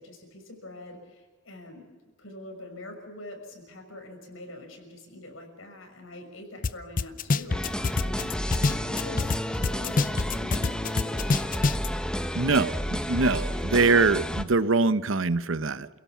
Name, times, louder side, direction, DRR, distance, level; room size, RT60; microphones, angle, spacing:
voice 1, 0.0-1.9 2.2-11.8, left 1 dB, 80° left, 4 dB, 6.1 m, -44 dB
sound 1, 6.6-6.7 7.0-9.4 9.6-11.9, left 3 dB, 40° left, 0.6 m, -25 dB
sound 2, 7.5-14.4, equal, 5° left, 1.0 m, -31 dB
voice 2, 12.3-15.9, right 3 dB, 70° right, 14 dB, 0.9 m, -23 dB
28.0 x 17.0 x 7.2 m, 1.4 s
head